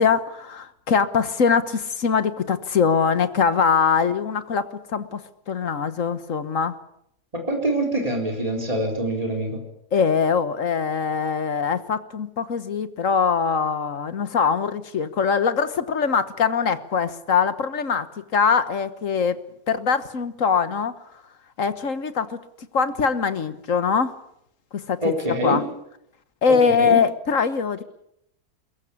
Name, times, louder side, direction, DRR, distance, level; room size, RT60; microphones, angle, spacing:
voice 1, 0.0-6.7 9.9-18.1 18.3-19.4 19.7-20.9 21.6-22.4 22.7-24.1 24.7-25.1 25.4-25.6 26.4-27.8, left 6 dB, 55° left, 12 dB, 1.6 m, -22 dB
voice 2, 7.3-9.6 25.0-25.6 26.5-27.0, right 1 dB, 20° right, 2 dB, 4.2 m, -25 dB
22.5 x 21.5 x 8.5 m, 0.76 s
omnidirectional pair, 1.7 m